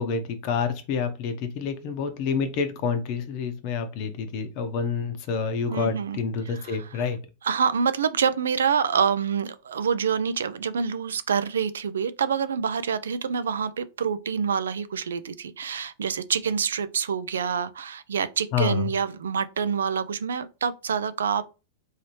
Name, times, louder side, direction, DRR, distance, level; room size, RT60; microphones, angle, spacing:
voice 1, 0.0-7.2 18.5-18.9, left 5 dB, 55° left, 0.7 m, -28 dB
voice 2, 5.7-6.2 6.5-7.1 7.4-21.4, right 7 dB, 85° right, 0.3 m, -27 dB
3.1 x 2.7 x 3.1 m
hypercardioid pair, 110°, 0 cm